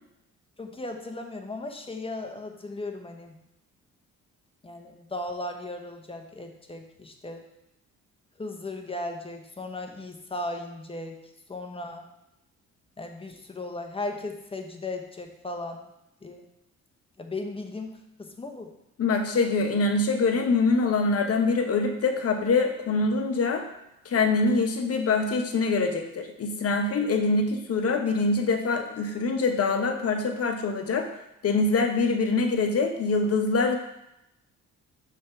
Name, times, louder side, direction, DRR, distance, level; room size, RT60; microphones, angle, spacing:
voice 1, 0.6-3.4 4.6-7.5 8.4-11.2 11.5-12.1 13.0-15.8 16.2-16.5 17.2-18.7, left 2 dB, 20° left, 4 dB, 0.9 m, -36 dB
voice 2, 19.0-23.6 24.0-31.1 31.4-33.8, left 3 dB, 50° left, 5 dB, 1.0 m, -24 dB
6.4 x 3.5 x 5.8 m, 0.85 s
cardioid pair, 90°, 30 cm